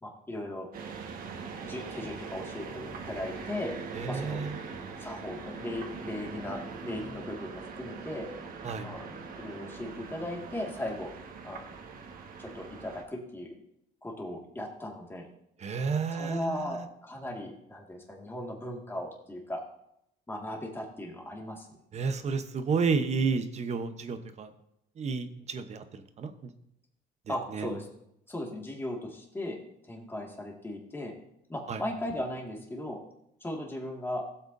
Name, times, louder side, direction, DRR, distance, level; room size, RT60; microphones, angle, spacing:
voice 1, 0.0-0.7 1.6-3.7 4.1-4.4 5.0-8.3 8.8-11.1 11.4-11.6 12.4-13.6 14.0-15.3 16.1-19.6 20.3-21.7 27.3-27.9 28.3-29.6 29.9-31.1 31.5-33.0 33.4-34.2, left 1 dB, 15° left, -1 dB, 2.0 m, -37 dB
sound 1, 0.7-13.0, right 5 dB, 60° right, 1.6 m, -42 dB
voice 2, 4.0-4.5 8.6-8.9 15.6-16.8 21.9-24.5 25.0-26.3 27.5-27.7 31.7-31.8, right 5 dB, 40° right, 9 dB, 1.0 m, -31 dB
16.0 x 7.9 x 2.7 m, 0.77 s
cardioid pair, 110°, 17 cm